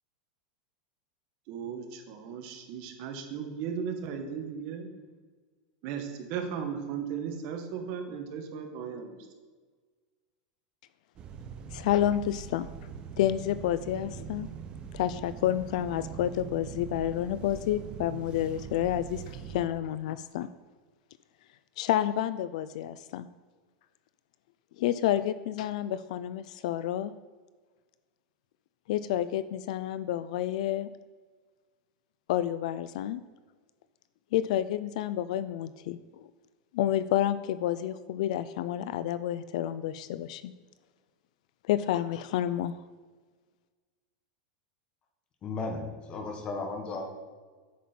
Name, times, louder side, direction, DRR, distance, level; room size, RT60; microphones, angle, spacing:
voice 1, 1.5-4.9 5.8-9.2, right 7 dB, 40° right, 5 dB, 1.2 m, -36 dB
sound 1, 11.2-19.7, right 7 dB, 25° right, 0.6 m, -42 dB
voice 2, 11.7-12.7 13.2-14.5 14.9-20.5 21.8-23.3 24.8-27.1 28.9-30.9 32.3-33.2 34.3-36.0 36.7-40.5 41.7-42.7, left 12 dB, 60° left, 14 dB, 0.3 m, -29 dB
voice 3, 45.4-47.1, left 3 dB, 20° left, 4 dB, 1.1 m, -35 dB
8.3 x 7.5 x 4.3 m, 1.4 s
supercardioid pair, 165°, 4 cm